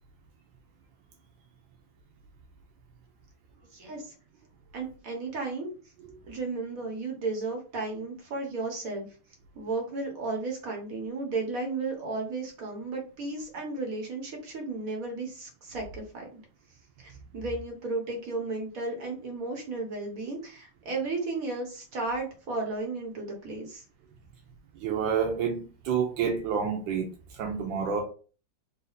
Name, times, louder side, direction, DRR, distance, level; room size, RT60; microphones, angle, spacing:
voice 1, 3.7-4.1 4.7-5.7 6.3-9.1 9.5-16.4 17.0-23.8, right 3 dB, 50° right, 1.5 m, -34 dB
voice 2, 24.8-28.0, right 6 dB, 85° right, 1.4 m, -29 dB
4.1 x 2.6 x 3.9 m
omnidirectional pair, 2.0 m